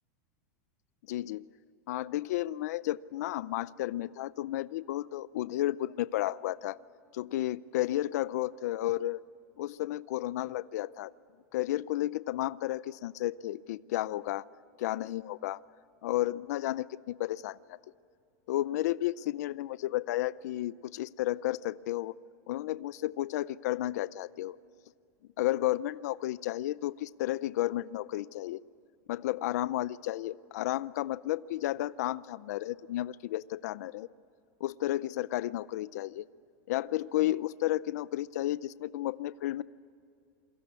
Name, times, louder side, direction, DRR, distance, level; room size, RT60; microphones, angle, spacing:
voice 1, 1.1-1.5 1.9-6.8 7.1-9.2 9.6-11.1 11.5-14.5 14.8-15.6 16.0-17.8 18.5-22.1 22.5-24.6 25.4-28.6 29.1-34.1 34.6-36.3 36.7-39.6, left 15 dB, 70° left, 18 dB, 0.5 m, -32 dB
27.5 x 23.0 x 8.3 m, 2.4 s
supercardioid pair, 170°, 9 cm